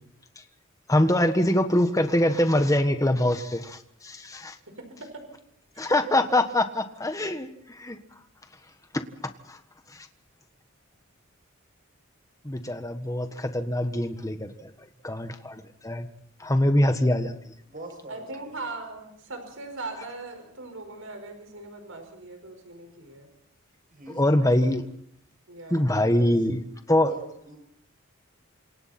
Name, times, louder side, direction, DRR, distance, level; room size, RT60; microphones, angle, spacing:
voice 1, 0.9-3.8 4.0-4.5 5.8-7.5 7.8-8.0 8.9-9.0 12.4-14.5 15.0-16.1 16.4-17.3 24.2-24.8 25.7-26.6 26.9-27.1, left 1 dB, 15° left, 7 dB, 1.4 m, -23 dB
voice 2, 4.8-5.2 5.7-5.9 18.1-23.3 25.5-26.0, right 3 dB, 75° right, 5 dB, 5.2 m, -40 dB
voice 3, 17.7-18.5 23.9-24.8 25.7-26.5 27.1-27.6, right 1 dB, 40° right, 3 dB, 7.7 m, -44 dB
28.5 x 26.5 x 4.4 m, 0.72 s
head